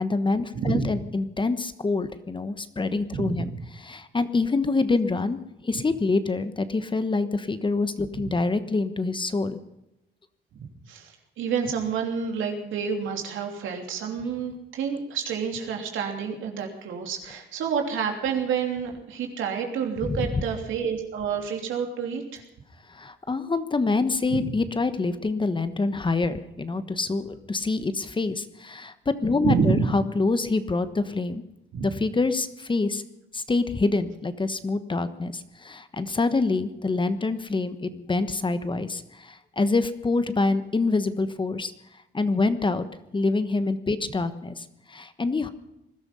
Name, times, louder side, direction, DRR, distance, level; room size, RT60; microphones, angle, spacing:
voice 1, 0.0-9.6 20.0-20.4 22.9-31.4 31.8-33.0 33.3-41.7 42.1-42.9 43.1-45.5, left 3 dB, 25° left, 11 dB, 1.2 m, -26 dB
voice 2, 0.5-0.9 3.2-3.6 8.1-8.2 10.9-22.4 24.3-24.5 29.4-29.8 31.7-31.9, right 6 dB, 80° right, 3 dB, 3.2 m, -28 dB
20.5 x 12.5 x 5.6 m, 0.88 s
cardioid pair, 90°, 20 cm